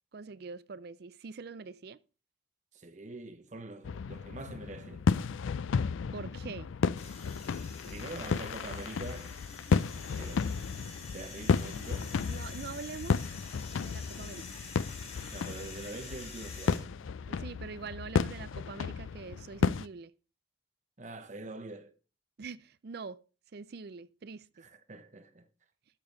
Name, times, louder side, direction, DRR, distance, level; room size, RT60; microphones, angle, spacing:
voice 1, 0.1-2.0 6.1-6.7 12.3-13.3 13.7-14.6 17.3-20.1 22.4-23.2 23.5-24.7, right 4 dB, 55° right, 0.4 m, -44 dB
voice 2, 2.7-5.1 7.9-9.4 10.2-10.5 11.1-12.2 15.3-17.0 21.0-22.0 24.6-25.5, right 2 dB, 40° right, 0.9 m, -44 dB
Fireworks - Ariccia, 3.8-19.9, left 5 dB, 80° left, 0.4 m, -33 dB
sound 1, 7.0-16.8, left 4 dB, 30° left, 2.3 m, -47 dB
11.5 x 6.9 x 3.9 m
head